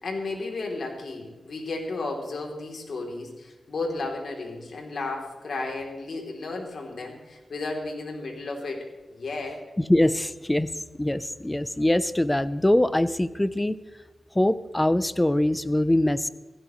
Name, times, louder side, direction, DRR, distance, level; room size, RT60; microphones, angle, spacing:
voice 1, 0.0-9.6, left 3 dB, 65° left, 1 dB, 3.2 m, -33 dB
voice 2, 9.9-10.7 11.0-13.8 14.3-16.3, left 1 dB, 15° left, 15 dB, 0.7 m, -23 dB
16.5 x 16.5 x 3.2 m, 1.2 s
cardioid pair, 70°, 0 cm